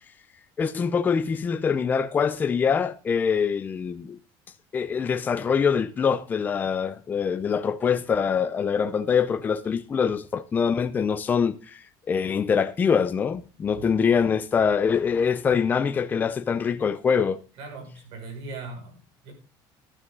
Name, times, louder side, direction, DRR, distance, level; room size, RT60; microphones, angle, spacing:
voice 1, 0.6-4.2 4.7-11.8 12.1-17.4, left 6 dB, 20° left, 0.6 m, -24 dB
voice 2, 17.6-19.3, right 3 dB, 60° right, 6.2 m, -40 dB
12.5 x 10.0 x 3.9 m
cardioid pair, 180°, 10 cm